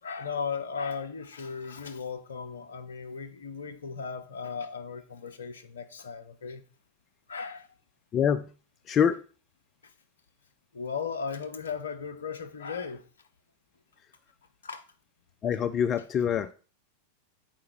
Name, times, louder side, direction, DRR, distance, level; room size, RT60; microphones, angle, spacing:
voice 1, 0.0-6.6 7.3-7.7 10.7-13.1 14.6-14.8, left 5 dB, 70° left, 0.8 m, -36 dB
voice 2, 8.1-8.5 8.9-9.2 15.4-16.5, left 8 dB, 30° left, 0.3 m, -25 dB
7.4 x 4.7 x 4.6 m
figure-of-eight pair, 90°, 0 cm